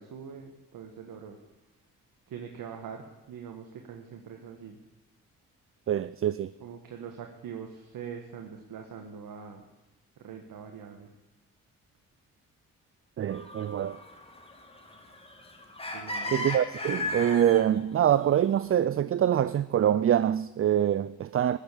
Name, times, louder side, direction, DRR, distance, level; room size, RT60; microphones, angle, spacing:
voice 1, 0.0-1.4 2.3-4.8 6.6-9.6 10.2-11.1 15.9-16.4, right 7 dB, 70° right, 1.7 m, -43 dB
voice 2, 5.9-6.5 13.2-14.0 16.3-21.6, right 10 dB, 40° right, 0.5 m, -25 dB
sound 1, 13.3-17.7 18.4-18.5, left 2 dB, 15° left, 2.4 m, -37 dB
14.0 x 7.2 x 9.9 m
supercardioid pair, 65°, 35 cm